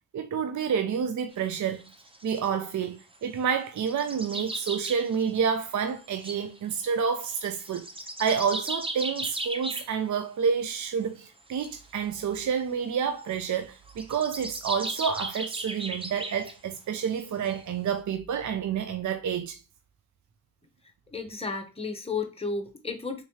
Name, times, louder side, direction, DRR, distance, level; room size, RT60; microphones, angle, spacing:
voice 1, 0.1-1.8 2.2-7.9 8.2-19.6, right 7 dB, 55° right, 0.5 m, -29 dB
sound 1, 1.3-2.5 3.0-3.2 3.8-5.4 6.0-9.9 11.4-12.5 13.2-13.5 13.9-16.6 17.2-17.3 17.5-17.6, right 1 dB, 15° right, 0.6 m, -37 dB
voice 2, 21.1-23.2, left 4 dB, 15° left, 0.8 m, -33 dB
3.5 x 3.1 x 2.8 m
wide cardioid pair, 85°, 36 cm